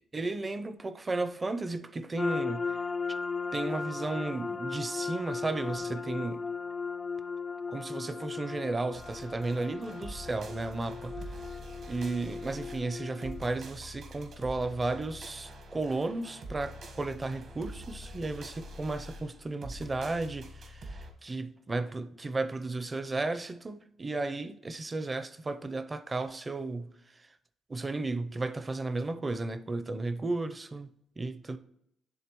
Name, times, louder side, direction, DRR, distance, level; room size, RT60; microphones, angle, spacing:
voice 1, 0.1-2.6 3.5-6.4 7.7-11.2 11.9-26.9 27.7-30.9 31.2-31.6, right 2 dB, 25° right, 0.6 m, -34 dB
sound 1, 2.2-13.4, left 5 dB, 30° left, 0.3 m, -37 dB
sound 2, 8.9-21.1, equal, 60° right, 1.3 m, -45 dB
11.0 x 3.6 x 3.0 m
cardioid pair, 90°, 0 cm